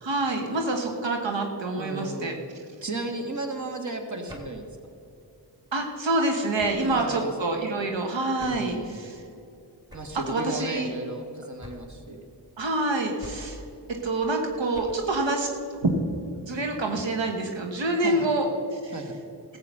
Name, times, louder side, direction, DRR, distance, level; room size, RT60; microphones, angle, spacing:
voice 1, 0.0-2.3 5.7-9.2 10.3-10.9 12.6-13.6 14.0-15.5 15.8-15.9 16.4-18.9, right 2 dB, 85° right, 3 dB, 1.2 m, -27 dB
voice 2, 1.8-2.4 2.8-4.6 6.8-7.3 8.4-9.0 9.9-12.2 18.0-18.3 18.9-19.2, right 2 dB, 40° right, 5 dB, 1.7 m, -34 dB
sound 1, 4.3-4.7 6.6-7.0 8.4-8.8 9.9-10.3 11.6-12.1 13.2-13.7 14.7-15.2, left 1 dB, 10° right, 2.4 m, -44 dB
14.0 x 7.7 x 6.6 m, 2.6 s
cardioid pair, 40°, 44 cm